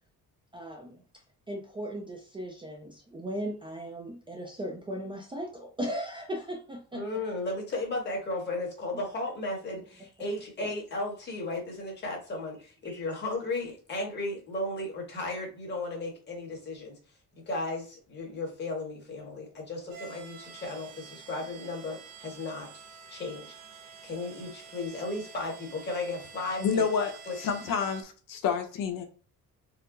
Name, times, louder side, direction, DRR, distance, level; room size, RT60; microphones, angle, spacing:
voice 1, 0.5-1.0 1.5-7.0 10.6-10.7 12.8-13.0, equal, 15° right, 0.4 m, -37 dB
voice 2, 6.9-17.0 17.5-22.7 23.1-23.5 24.0-26.8 27.3-27.4, left 2 dB, 30° left, 1.3 m, -35 dB
sound 1, 19.9-28.0, right 6 dB, 60° right, 0.9 m, -48 dB
voice 3, 26.6-29.0, left 6 dB, 70° left, 0.8 m, -29 dB
4.3 x 2.0 x 3.8 m
cardioid pair, 180°, 33 cm